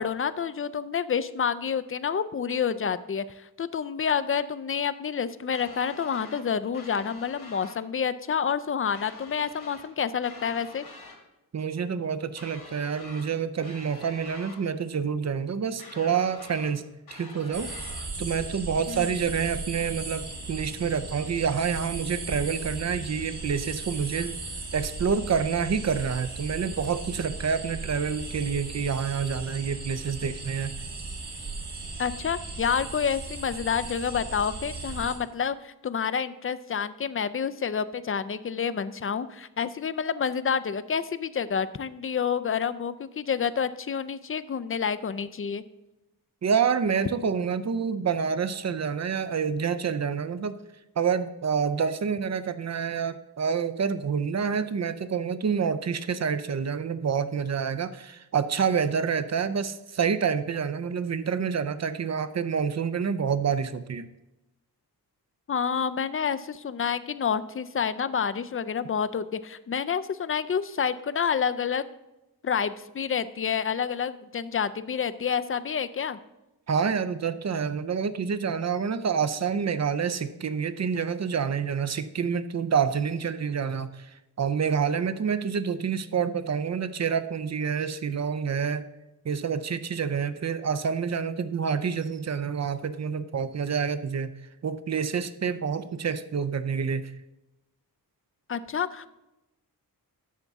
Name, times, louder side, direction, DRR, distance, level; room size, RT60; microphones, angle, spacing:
voice 1, 0.0-10.9 18.9-19.1 32.0-45.6 65.5-71.9 72.4-76.2 98.5-99.1, left 7 dB, 35° left, 13 dB, 0.4 m, -28 dB
sound 1, 5.5-6.4 6.7-7.8 8.9-9.9 10.2-11.2 12.4-13.3 13.6-14.6 15.8-16.7 17.1-18.1, left 3 dB, 70° left, 1.7 m, -46 dB
voice 2, 11.5-16.9 17.1-17.7 18.2-24.3 24.7-30.7 46.4-50.6 51.0-64.1 76.7-84.1 84.4-88.9 89.2-94.3 94.6-97.1, right 6 dB, 45° right, 13 dB, 0.5 m, -28 dB
sound 2, 17.5-35.2, right 3 dB, 80° right, 2.0 m, -37 dB
11.0 x 6.9 x 3.6 m, 0.96 s
wide cardioid pair, 100°, 39 cm